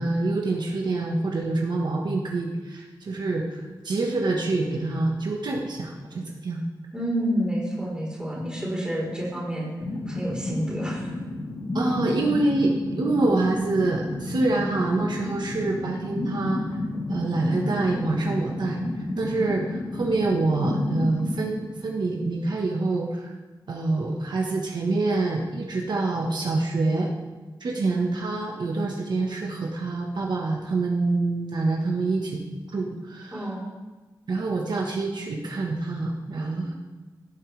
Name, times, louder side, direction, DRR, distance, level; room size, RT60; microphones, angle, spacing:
voice 1, 0.0-6.6 11.7-16.6 17.1-18.8 19.2-23.3 23.7-27.1 27.6-32.4 32.7-33.5 34.3-36.7, right 2 dB, 70° right, -1 dB, 1.4 m, -26 dB
voice 2, 6.9-9.7 10.1-11.1 27.7-27.9 33.3-33.6, equal, 10° right, -5 dB, 4.0 m, -29 dB
sound 1, 9.8-22.5, left 2 dB, 50° left, 1.7 m, -32 dB
16.5 x 8.6 x 3.4 m, 1.2 s
wide cardioid pair, 155°, 8 cm